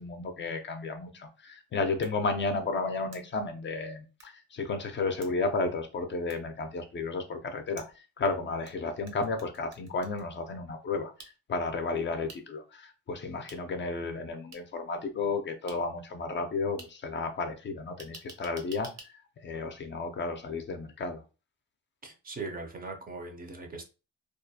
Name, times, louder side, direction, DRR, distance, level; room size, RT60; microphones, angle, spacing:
voice 1, 0.0-19.1 19.4-21.2, left 3 dB, 40° left, 0.4 m, -33 dB
sound 1, 2.0-2.1 3.1-3.2 4.2-4.3 5.2-5.3 6.3-6.4 7.8-8.7 9.1-10.2 11.2-11.3 12.3-12.4 13.5-13.6 14.5-14.6 15.7-15.8 16.8-16.9 18.0-19.1, right 3 dB, 60° right, 0.7 m, -48 dB
voice 2, 22.0-23.8, right 3 dB, 30° right, 0.5 m, -40 dB
2.4 x 2.1 x 2.6 m
cardioid pair, 115°, 30 cm